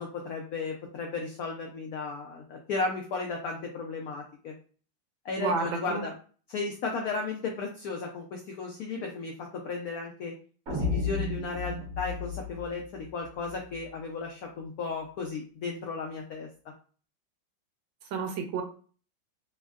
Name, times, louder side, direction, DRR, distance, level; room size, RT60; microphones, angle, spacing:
voice 1, 0.0-4.5 5.2-6.1 6.5-10.3 10.7-16.5, left 4 dB, 85° left, 0 dB, 0.8 m, -35 dB
voice 2, 5.4-6.0 18.1-18.6, right 4 dB, 80° right, 4 dB, 1.4 m, -30 dB
sound 1, 10.7-13.8, left 4 dB, 50° right, 1.0 m, -33 dB
3.4 x 2.1 x 2.3 m, 0.40 s
omnidirectional pair, 2.1 m